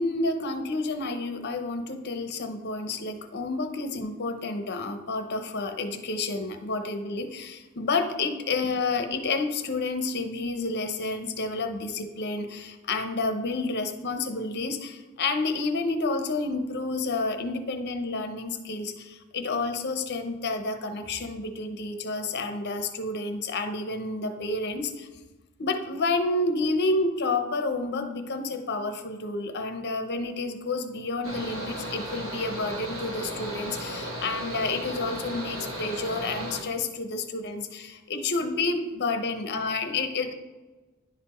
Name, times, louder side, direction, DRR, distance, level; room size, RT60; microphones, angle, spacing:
voice 1, 0.0-25.1 25.6-40.3, left 3 dB, 55° left, 8 dB, 0.8 m, -30 dB
Mechanical fan, 31.2-36.6, equal, 75° right, 1.7 m, -35 dB
10.5 x 4.2 x 4.3 m, 1.2 s
head